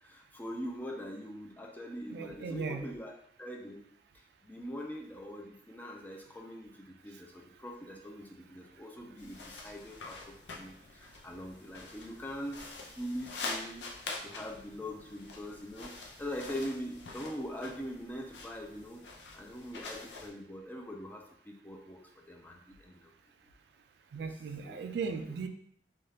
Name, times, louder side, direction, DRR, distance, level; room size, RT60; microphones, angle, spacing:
voice 1, 0.0-3.8 4.4-13.9 14.2-19.0 19.3-22.0 22.3-23.0 24.2-24.3 24.6-24.8, equal, 10° left, 0 dB, 0.4 m, -42 dB
voice 2, 2.1-2.9 24.1-25.5, right 5 dB, 65° right, 7 dB, 0.3 m, -37 dB
sound 1, 9.2-20.3, left 3 dB, 90° left, 0.5 m, -45 dB
2.7 x 2.3 x 3.2 m, 0.67 s
head